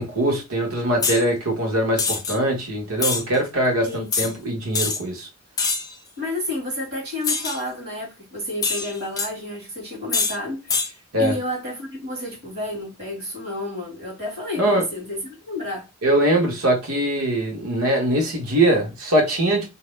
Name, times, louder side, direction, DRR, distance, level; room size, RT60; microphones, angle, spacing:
voice 1, 0.0-5.3 11.1-11.3 14.6-14.9 16.0-19.7, right 1 dB, 85° right, 1.2 m, -22 dB
sound 1, 1.0-1.2 2.0-2.4 3.0-3.2 4.1-4.3 4.7-5.0 5.6-5.9 7.2-7.6 8.6-9.3 10.1-10.4 10.7-10.9, left 4 dB, 15° left, 0.3 m, -24 dB
voice 2, 6.2-15.9, left 1 dB, 45° right, 1.6 m, -31 dB
2.7 x 2.1 x 3.1 m
head